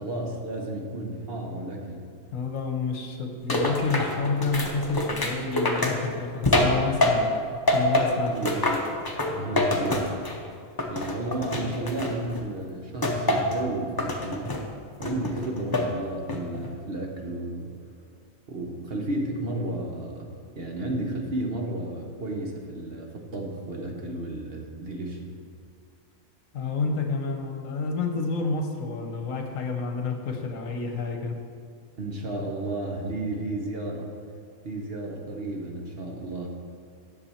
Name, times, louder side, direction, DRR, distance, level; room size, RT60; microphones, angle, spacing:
voice 1, 0.0-2.0 8.2-8.8 9.4-10.1 10.9-14.5 15.0-17.7 18.5-20.3 20.6-25.3 32.0-34.1 34.6-36.5, right 1 dB, 45° right, 0 dB, 1.1 m, -32 dB
voice 2, 2.3-7.3 7.7-8.4 26.5-31.4, left 4 dB, 65° left, 4 dB, 1.2 m, -29 dB
sound 1, 3.5-7.4 7.7-10.5 10.8-12.4 13.0-13.6 14.0-14.6 15.0-15.9 16.3-16.7, left 1 dB, 20° left, 0.6 m, -26 dB
9.9 x 6.9 x 4.4 m, 2.3 s
omnidirectional pair, 1.5 m